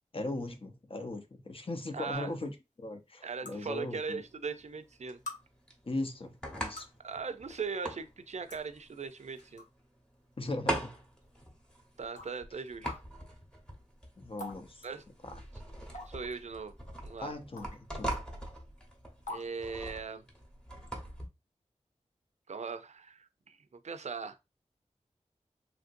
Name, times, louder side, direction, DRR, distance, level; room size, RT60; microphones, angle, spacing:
voice 1, 0.1-4.2 5.8-6.9 10.4-11.0 14.2-14.9 15.2-15.4 17.2-18.2, left 2 dB, 45° left, 0.6 m, -39 dB
voice 2, 1.9-2.3 3.2-5.2 7.0-9.6 12.0-12.9 14.8-15.0 16.1-16.7 17.0-17.3 19.3-20.2 22.5-23.6 23.8-24.4, right 5 dB, 65° right, 0.4 m, -39 dB
sound 1, 2.1-2.2 3.5-3.6 4.6-4.7 5.3-5.4 6.5-7.0 8.0-8.1 8.5-8.6 9.4-9.7 10.2-10.3 11.2-11.3 12.2-12.3 12.8-13.0 14.4-14.6 14.8-14.9 15.9-16.3 17.6-17.8 18.1-18.2 19.3-19.5, left 2 dB, 85° left, 0.8 m, -43 dB
sound 2, 3.6-21.3, right 1 dB, 5° left, 1.0 m, -42 dB
3.1 x 2.5 x 2.5 m
wide cardioid pair, 70°, 13 cm